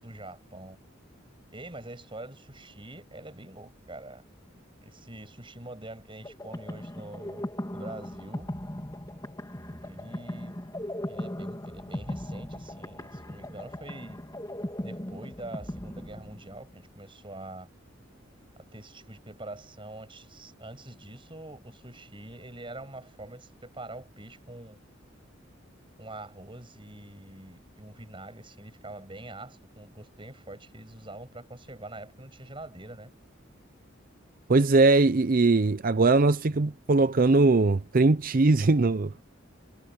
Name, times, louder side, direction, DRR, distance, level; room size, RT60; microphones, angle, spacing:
voice 1, 0.0-0.8 1.5-4.2 4.8-7.5 7.7-8.5 9.8-10.5 11.1-14.2 14.8-17.7 18.7-24.8 26.0-33.1, right 2 dB, 25° right, 7.9 m, -44 dB
sound 1, 6.2-16.8, left 1 dB, 20° left, 2.8 m, -38 dB
voice 2, 34.5-39.1, right 3 dB, 45° right, 0.6 m, -21 dB
head